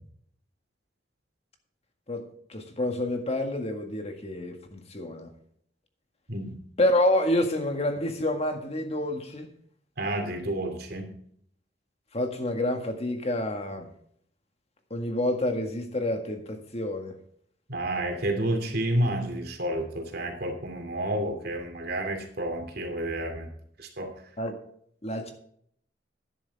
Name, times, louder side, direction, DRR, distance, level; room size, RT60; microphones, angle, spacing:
voice 1, 2.1-5.3 6.8-9.5 12.1-13.9 14.9-17.1 24.4-24.6 25.0-25.3, left 1 dB, 35° left, 5 dB, 1.8 m, -28 dB
voice 2, 6.3-6.6 10.0-11.1 17.7-23.5 23.8-24.1, right 1 dB, 60° right, 4 dB, 2.7 m, -30 dB
12.0 x 11.0 x 3.5 m, 0.66 s
head